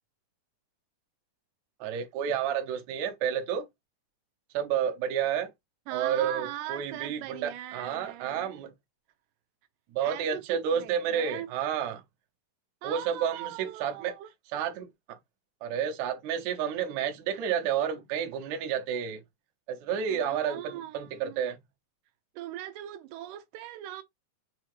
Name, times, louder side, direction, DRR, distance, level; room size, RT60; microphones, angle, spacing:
voice 1, 1.8-3.7 4.5-5.5 5.9-8.7 9.9-12.0 12.8-14.1 14.5-15.2 15.6-19.2 19.7-21.6, right 8 dB, 70° right, 2.1 m, -30 dB
voice 2, 5.9-8.5 10.0-11.5 12.8-14.3 20.1-21.4 22.4-24.0, right 13 dB, 85° right, 2.3 m, -40 dB
6.4 x 2.7 x 3.0 m
omnidirectional pair, 3.7 m